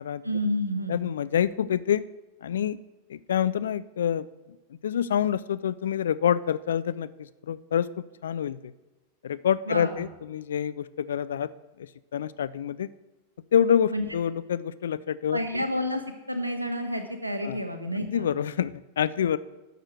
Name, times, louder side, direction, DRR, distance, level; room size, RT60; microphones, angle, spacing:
voice 1, 0.2-1.0 9.7-9.9 13.9-14.0 15.3-16.0 16.3-18.3, equal, 85° right, 7 dB, 1.2 m, -29 dB
voice 2, 0.9-2.1 2.4-2.8 3.1-4.3 4.8-8.7 9.2-11.5 11.8-12.9 13.5-15.6 17.4-17.7 18.0-19.4, left 9 dB, 65° left, 16 dB, 0.3 m, -27 dB
12.0 x 6.2 x 6.3 m, 1.1 s
figure-of-eight pair, 90°, 0 cm